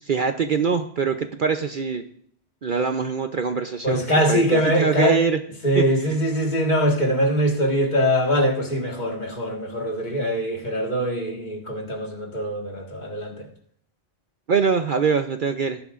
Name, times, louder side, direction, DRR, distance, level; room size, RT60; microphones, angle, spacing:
voice 1, 0.0-2.0 2.6-5.4 5.8-5.9 14.5-15.8, right 5 dB, 50° right, 7 dB, 0.8 m, -23 dB
voice 2, 3.8-5.2 5.6-13.5, equal, 40° left, 1 dB, 1.8 m, -22 dB
18.0 x 11.5 x 2.5 m, 0.63 s
omnidirectional pair, 1.2 m